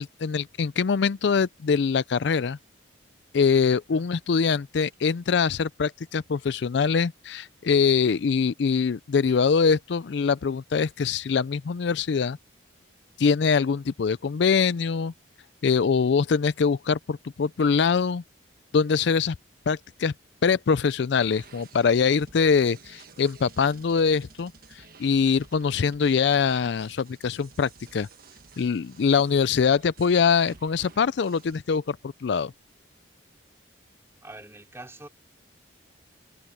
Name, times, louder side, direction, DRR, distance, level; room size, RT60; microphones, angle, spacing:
voice 1, 0.0-2.6 3.3-12.4 13.2-15.1 15.6-18.2 18.7-19.3 19.7-20.1 20.4-24.5 25.0-28.1 28.6-32.0 32.2-32.5, left 5 dB, 60° left, 0.4 m, -23 dB
sound 1, 21.2-31.6, right 4 dB, 50° right, 1.4 m, -52 dB
voice 2, 34.2-35.1, right 2 dB, 15° right, 3.3 m, -44 dB
head